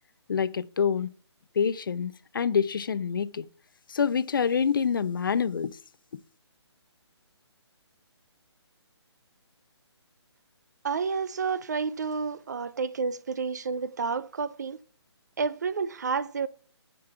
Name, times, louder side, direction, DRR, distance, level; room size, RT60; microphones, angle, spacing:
voice 1, 0.3-1.1 1.6-3.5 3.9-5.8, left 6 dB, 50° left, 0.4 m, -26 dB
voice 2, 10.8-14.8 15.4-16.5, right 5 dB, 40° right, 0.4 m, -30 dB
8.7 x 5.3 x 5.6 m
hypercardioid pair, 165°, 15 cm